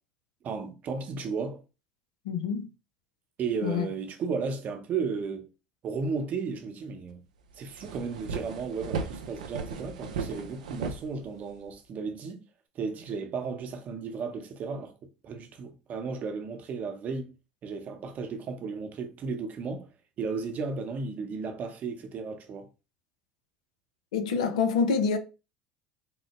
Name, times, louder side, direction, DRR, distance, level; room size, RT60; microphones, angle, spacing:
voice 1, 0.4-1.6 3.4-5.5 5.8-7.2 7.6-12.4 12.7-17.3 17.6-19.9 20.2-22.7, right 5 dB, 45° right, 0.8 m, -34 dB
voice 2, 2.3-2.7 3.6-3.9 24.1-25.2, left 5 dB, 80° left, 0.5 m, -26 dB
sound 1, 7.1-7.2 7.5-11.7, right 5 dB, 85° right, 0.4 m, -36 dB
3.7 x 2.1 x 3.0 m
hypercardioid pair, 75°, 4 cm